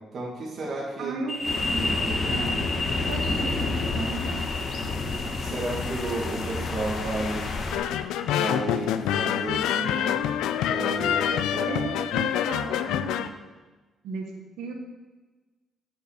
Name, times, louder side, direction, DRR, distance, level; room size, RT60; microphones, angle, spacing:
voice 1, 0.1-1.2 1.7-2.4 5.2-7.5 8.3-10.2 10.7-11.8, right 2 dB, 55° right, -4 dB, 2.0 m, -33 dB
voice 2, 1.0-1.3 2.3-2.7 3.1-4.4 11.7-13.3 14.0-14.7, right 4 dB, 85° right, 2 dB, 1.2 m, -35 dB
sound 1, 1.3-8.8, left 2 dB, 25° left, 0.9 m, -33 dB
sound 2, 1.4-7.8, left 3 dB, 60° left, 1.1 m, -30 dB
sound 3, 7.7-13.3, left 10 dB, 90° left, 0.4 m, -26 dB
8.8 x 5.4 x 6.5 m, 1.3 s
cardioid pair, 90°, 0 cm